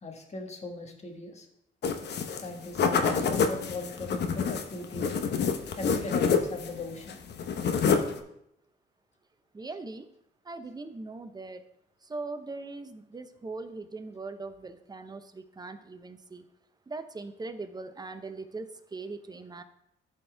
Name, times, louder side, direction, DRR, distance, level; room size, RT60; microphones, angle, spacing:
voice 1, 0.0-1.5 2.3-5.1 5.8-7.2, left 2 dB, 35° left, 3 dB, 1.5 m, -39 dB
sound 1, 1.8-2.5 2.7-6.8 7.0-8.2, left 6 dB, 60° left, 0.9 m, -27 dB
voice 2, 9.5-10.1 10.5-11.6 12.0-16.4 16.9-19.6, right 3 dB, 20° right, 9 dB, 0.7 m, -40 dB
13.0 x 4.4 x 3.4 m, 0.77 s
cardioid pair, 90°, 20 cm